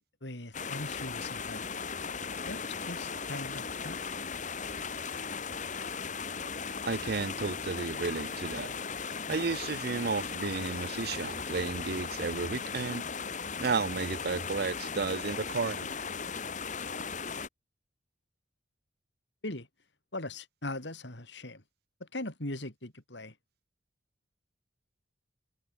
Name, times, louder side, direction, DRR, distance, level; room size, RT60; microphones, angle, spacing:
voice 1, 0.2-1.7 2.5-4.0 19.4-19.7 20.1-21.6 22.0-23.3, left 2 dB, 65° left, 3.8 m, -40 dB
sound 1, 0.5-17.5, left 5 dB, 40° left, 1.5 m, -37 dB
voice 2, 6.9-8.8 9.3-13.0 13.6-15.9, right 4 dB, 55° right, 0.6 m, -33 dB
head